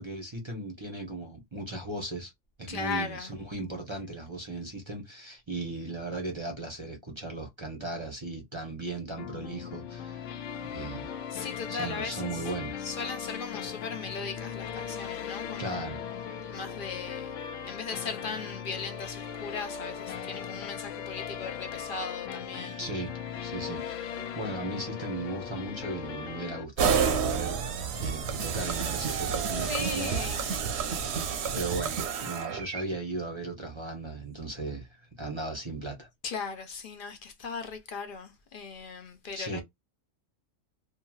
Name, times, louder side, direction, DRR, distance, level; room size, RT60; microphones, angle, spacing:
voice 1, 0.0-2.3 2.6-10.3 10.6-11.1 11.7-12.7 15.6-16.0 22.8-23.1 23.4-27.6 28.0-30.3 30.8-36.1 39.3-39.6, right 2 dB, 30° right, 0.6 m, -37 dB
voice 2, 2.7-3.3 11.3-12.4 12.8-16.0 16.5-17.3 17.7-22.8 29.5-30.7 36.2-39.6, left 5 dB, 55° left, 0.6 m, -38 dB
sound 1, 9.2-26.6, left 8 dB, 75° left, 0.9 m, -38 dB
sound 2, 26.8-32.8, right 6 dB, 65° right, 0.8 m, -29 dB
2.8 x 2.6 x 2.3 m
omnidirectional pair, 1.3 m